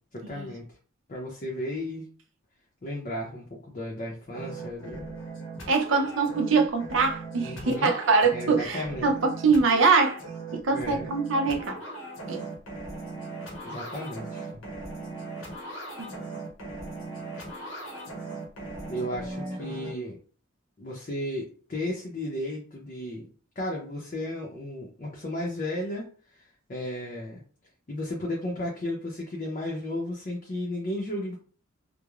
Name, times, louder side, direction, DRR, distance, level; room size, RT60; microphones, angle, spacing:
voice 1, 0.1-0.6 1.1-2.1 2.8-5.1 7.4-7.9 8.2-9.1 10.7-11.1 13.6-14.6 18.9-20.2 20.8-23.3 23.6-26.1 26.3-27.4 27.9-31.4, left 1 dB, 40° left, 0.6 m, -34 dB
sound 1, 4.3-19.9, right 2 dB, 75° left, 0.8 m, -39 dB
voice 2, 5.7-10.2 10.5-11.8 12.3-12.4 16.0-16.2, right 4 dB, 70° right, 0.6 m, -23 dB
3.0 x 2.0 x 2.3 m
head